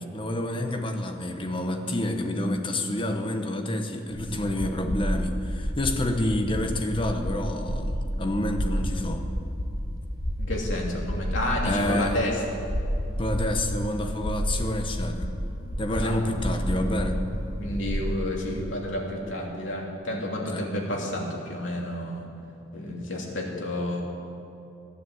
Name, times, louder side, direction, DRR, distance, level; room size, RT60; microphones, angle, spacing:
voice 1, 0.1-9.3 11.6-12.3 13.2-15.3 15.8-17.2 20.5-20.7, left 1 dB, 25° left, 5 dB, 1.0 m, -28 dB
sound 1, 4.1-18.1, equal, 50° left, 1.4 m, -31 dB
voice 2, 10.4-12.3 15.9-16.2 17.6-22.2 22.7-24.0, left 1 dB, 75° left, -2 dB, 2.9 m, -30 dB
14.5 x 10.0 x 7.9 m, 2.8 s
head